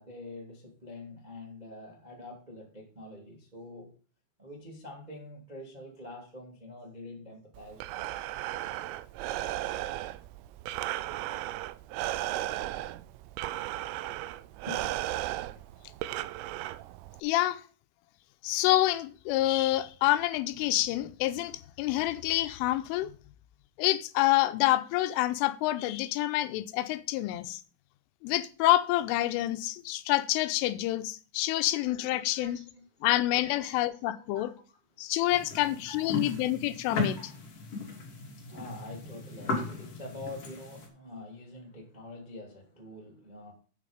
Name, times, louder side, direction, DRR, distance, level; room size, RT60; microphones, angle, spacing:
voice 1, 0.0-3.9 4.4-8.3 14.7-14.9 32.2-32.8 33.4-34.8 35.4-36.4 37.1-37.3 37.7-38.0 38.4-43.5, left 2 dB, 30° right, 0.7 m, -46 dB
Breathing, 7.6-17.2, right 15 dB, 90° right, 3.2 m, -35 dB
voice 2, 17.2-17.6 18.4-23.1 23.8-27.6 28.2-32.6 33.0-34.5 35.0-37.2, left 15 dB, 90° left, 3.2 m, -27 dB
sound 1, 35.3-40.9, left 3 dB, 35° left, 2.9 m, -37 dB
9.2 x 7.6 x 5.1 m
omnidirectional pair, 5.7 m